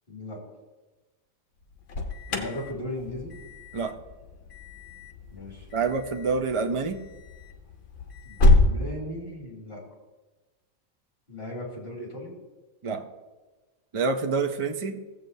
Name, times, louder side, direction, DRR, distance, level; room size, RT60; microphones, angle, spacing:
voice 1, 0.1-0.4 2.3-3.4 5.3-5.7 8.2-9.8 11.3-12.3, left 1 dB, 45° left, -4 dB, 2.8 m, -37 dB
Alarm, 1.6-8.7, left 2 dB, 60° left, 1.3 m, -27 dB
voice 2, 5.7-7.0 12.8-13.1 13.9-15.0, right 4 dB, 50° right, 5 dB, 0.3 m, -27 dB
15.5 x 7.9 x 2.7 m, 1.2 s
omnidirectional pair, 1.5 m